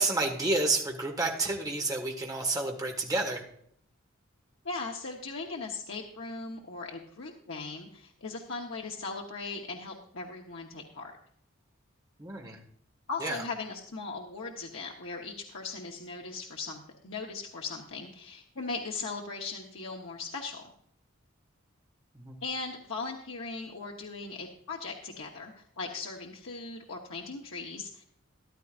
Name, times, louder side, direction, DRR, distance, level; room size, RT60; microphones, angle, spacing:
voice 1, 0.0-3.4 12.2-12.6 13.2-13.4 22.2-22.3, right 2 dB, 20° right, 1 dB, 1.9 m, -30 dB
voice 2, 4.6-11.1 13.1-20.6 22.4-28.0, left 4 dB, 75° left, -1 dB, 1.2 m, -39 dB
14.0 x 12.0 x 2.6 m, 0.66 s
head